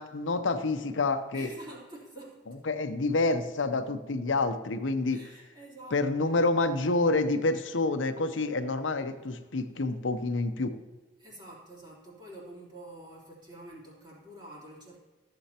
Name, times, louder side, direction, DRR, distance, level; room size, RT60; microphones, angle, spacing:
voice 1, 0.0-1.5 2.7-5.2 5.9-10.7, left 3 dB, 85° left, 9 dB, 0.8 m, -28 dB
voice 2, 1.3-2.4 5.1-6.3 11.2-15.0, right 1 dB, 25° right, -5 dB, 3.4 m, -47 dB
14.5 x 7.7 x 2.9 m, 1.3 s
head